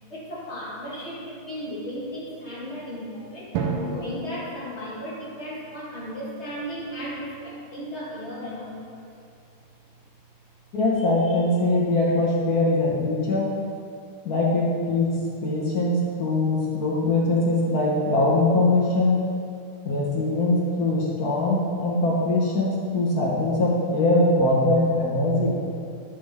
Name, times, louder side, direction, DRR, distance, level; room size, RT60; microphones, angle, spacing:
voice 1, 0.1-9.1 11.0-11.4, equal, 35° left, -7 dB, 1.5 m, -36 dB
Drum, 3.5-6.1, right 4 dB, 90° right, 1.6 m, -32 dB
voice 2, 10.7-13.5 14.2-15.2 15.4-19.2 19.8-25.5, left 2 dB, 55° left, -4 dB, 1.1 m, -22 dB
7.6 x 5.3 x 3.4 m, 2.3 s
omnidirectional pair, 2.4 m